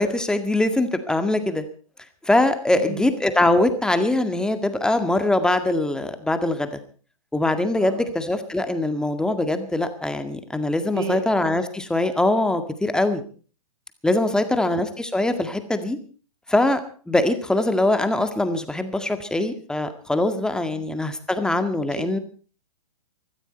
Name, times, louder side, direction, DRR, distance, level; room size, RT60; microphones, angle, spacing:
voice 1, 0.0-1.6 2.3-6.8 7.3-13.2 14.0-16.0 16.5-16.8 17.1-22.2, left 2 dB, 5° left, 9 dB, 1.9 m, -22 dB
voice 2, 2.7-3.1 7.7-8.1 10.9-11.2 14.3-14.5 20.7-20.8 21.9-22.2, right 6 dB, 50° right, 6 dB, 4.6 m, -33 dB
21.5 x 14.5 x 4.4 m, 0.39 s
hypercardioid pair, 125°, 19 cm